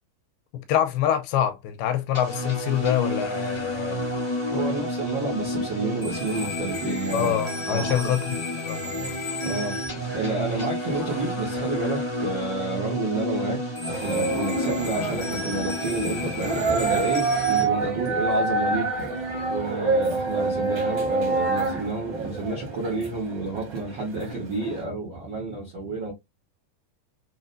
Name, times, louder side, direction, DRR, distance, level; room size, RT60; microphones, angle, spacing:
voice 1, 0.7-4.0 7.1-9.1, left 10 dB, 85° left, 2.5 m, -25 dB
sound 1, 2.1-17.6, left 1 dB, 25° left, 0.7 m, -30 dB
voice 2, 4.5-7.3 7.6-8.0 9.4-13.6 13.9-19.0 19.5-26.1, right 3 dB, 90° right, 1.0 m, -30 dB
sound 2, 13.9-24.8, right 3 dB, 60° right, 1.1 m, -27 dB
6.2 x 2.1 x 2.5 m
omnidirectional pair, 4.3 m